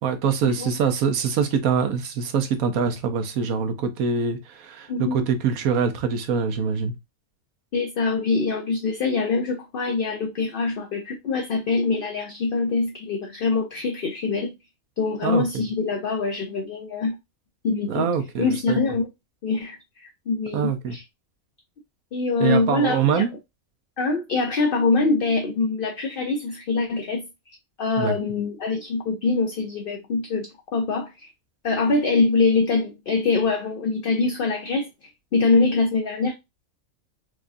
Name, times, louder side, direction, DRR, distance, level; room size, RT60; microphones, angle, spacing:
voice 1, 0.0-6.9 15.2-15.6 17.9-18.8 20.5-21.0 22.4-23.3 28.0-28.2, right 6 dB, 85° right, 1.2 m, -24 dB
voice 2, 4.9-5.2 7.7-14.5 15.0-17.2 17.6-18.1 18.4-19.1 19.4-21.0 22.1-23.2 24.0-27.3 27.8-31.3 31.6-36.3, left 4 dB, 55° left, 0.7 m, -24 dB
4.7 x 2.4 x 2.5 m
omnidirectional pair, 1.4 m